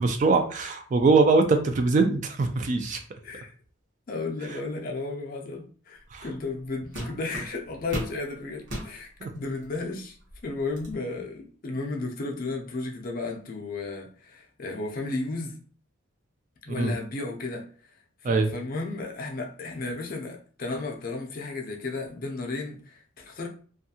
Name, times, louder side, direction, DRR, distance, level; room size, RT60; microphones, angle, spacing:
voice 1, 0.0-3.0 6.1-6.2 9.2-9.3 16.7-16.9 18.2-18.5, right 3 dB, 35° right, 0.3 m, -22 dB
voice 2, 4.1-10.2 10.4-15.6 16.6-17.7 18.2-23.5, left 3 dB, 45° left, 0.5 m, -34 dB
sound 1, 6.2-6.4 6.9-8.2 8.6-8.9 9.6-9.7 10.2-11.0, equal, 60° right, 0.9 m, -35 dB
2.6 x 2.3 x 2.7 m
head